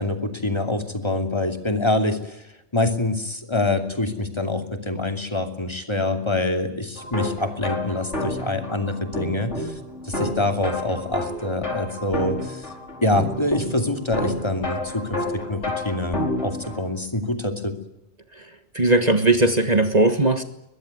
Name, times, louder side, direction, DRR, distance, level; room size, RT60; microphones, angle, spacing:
voice 1, 0.0-2.4 2.7-9.7 10.0-12.7 13.0-17.8, left 2 dB, 25° left, 6 dB, 2.7 m, -25 dB
sound 1, 7.0-16.8, left 1 dB, 85° left, 5.2 m, -30 dB
voice 2, 18.7-20.4, right 2 dB, 35° right, 8 dB, 1.5 m, -18 dB
23.0 x 20.0 x 9.6 m, 0.85 s
omnidirectional pair, 1.2 m